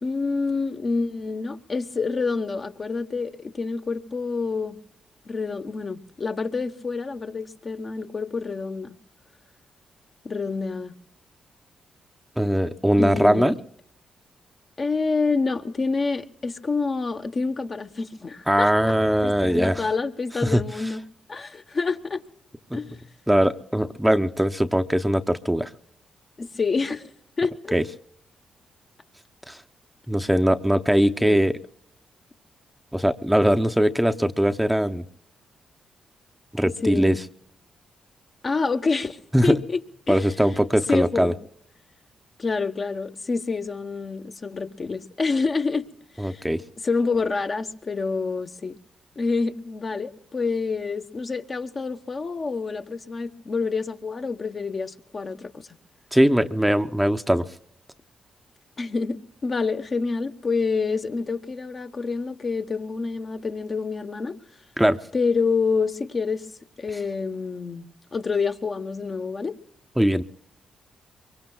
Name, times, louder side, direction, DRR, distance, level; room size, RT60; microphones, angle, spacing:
voice 1, 0.0-4.8 5.3-9.0 10.2-11.0 13.0-13.5 14.8-18.9 19.2-21.0 21.3-22.2 22.7-22.9 26.4-27.1 27.4-27.7 31.2-31.4 36.8-37.2 38.4-39.8 40.1-40.2 40.9-41.3 42.4-45.9 46.2-46.5 46.8-48.7 49.2-55.5 58.8-64.4 65.1-66.5 66.8-69.6, left 4 dB, 45° left, 1.1 m, -27 dB
voice 2, 12.4-13.5 18.5-19.9 20.4-20.6 22.7-22.8 23.3-25.7 27.7-27.8 29.5-29.6 30.1-31.6 32.9-35.1 36.5-37.2 39.3-39.6 40.1-41.3 46.2-46.6 56.1-57.5 64.8-65.0 70.0-70.2, equal, 5° right, 0.7 m, -21 dB
23.5 x 23.0 x 2.3 m
supercardioid pair, 50°, 0 cm